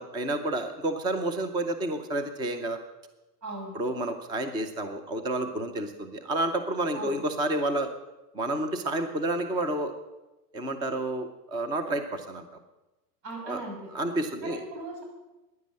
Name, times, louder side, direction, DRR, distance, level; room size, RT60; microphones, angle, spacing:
voice 1, 0.0-2.8 3.7-7.9 8.3-9.9 10.5-12.4 13.5-13.6 13.9-14.6, right 1 dB, 10° right, 8 dB, 0.6 m, -30 dB
voice 2, 3.4-3.8 6.9-7.2 13.2-13.9 14.4-15.0, right 2 dB, 85° right, 1 dB, 6.9 m, -38 dB
15.0 x 10.5 x 7.5 m, 1.0 s
supercardioid pair, 150°, 48 cm